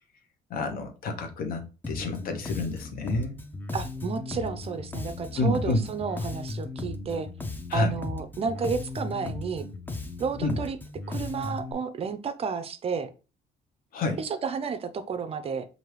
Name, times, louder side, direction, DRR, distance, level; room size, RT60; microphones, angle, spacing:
voice 1, 0.5-3.4 5.4-5.9 7.7-8.0 10.4-10.5 13.9-14.2, left 2 dB, 65° left, 0.9 m, -28 dB
Bass guitar, 1.8-11.7, left 3 dB, 10° left, 0.6 m, -36 dB
voice 2, 3.7-7.3 7.7-9.7 10.2-10.8 11.1-13.1 14.2-15.7, right 5 dB, 40° right, 0.5 m, -31 dB
4.5 x 2.6 x 3.2 m
cardioid pair, 105°, 16 cm